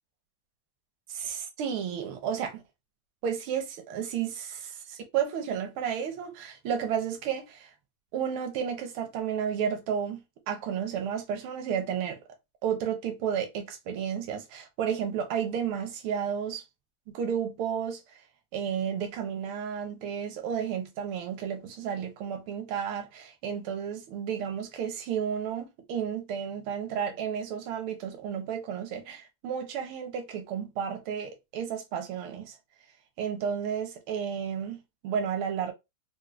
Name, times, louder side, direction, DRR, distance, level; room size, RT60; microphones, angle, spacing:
voice 1, 1.1-2.6 3.2-7.7 8.1-12.2 12.6-16.6 17.1-18.2 18.5-32.6 33.2-35.7, right 8 dB, 80° right, 1.6 m, -32 dB
4.7 x 2.0 x 2.2 m
omnidirectional pair, 2.3 m